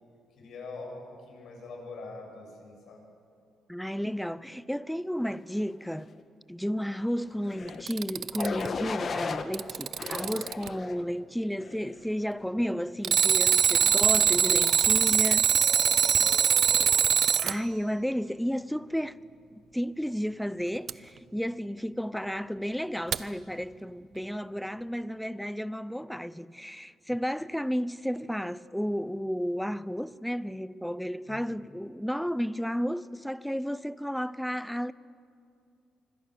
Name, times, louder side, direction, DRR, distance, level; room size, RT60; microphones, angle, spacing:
voice 1, 0.4-3.0 12.5-12.7 15.5-17.1 22.1-22.2 31.3-31.4, left 3 dB, 60° left, 7.9 m, -44 dB
voice 2, 3.7-6.1 6.5-15.5 17.4-19.2 19.5-34.9, equal, ahead, 0.5 m, -32 dB
sound 1, 7.5-7.8 8.4-9.4 10.0-11.0 11.6-12.0, left 5 dB, 40° left, 1.3 m, -35 dB
Alarm, 7.7-8.7 9.3-10.7 13.0-17.6 20.9-21.0 23.1-23.2, right 8 dB, 55° right, 0.6 m, -23 dB
25.5 x 25.5 x 6.6 m
cardioid pair, 145°, 0 cm